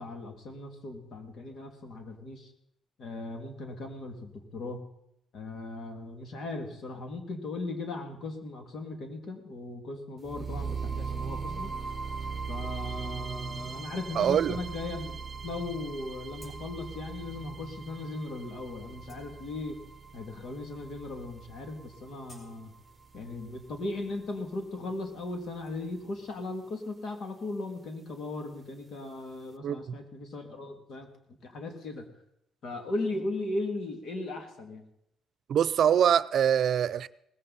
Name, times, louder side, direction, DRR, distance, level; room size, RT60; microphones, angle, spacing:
voice 1, 0.0-2.5 3.0-4.8 5.3-11.7 12.5-15.2 15.4-19.8 20.1-22.7 23.1-31.1 31.4-32.0 32.6-34.8, left 2 dB, 65° left, 2.9 m, -37 dB
sound 1, 10.3-24.3, right 5 dB, 30° right, 0.8 m, -40 dB
voice 2, 14.2-14.6 29.6-29.8 35.5-37.1, right 9 dB, 65° right, 0.5 m, -24 dB
sound 2, 16.3-17.1 17.5-17.6 18.2-18.4 18.8-19.9 20.6-20.7 21.0-21.3 21.6-23.4 23.8-25.7, right 1 dB, 25° left, 5.2 m, -57 dB
19.0 x 15.0 x 4.3 m
cardioid pair, 90°, 0 cm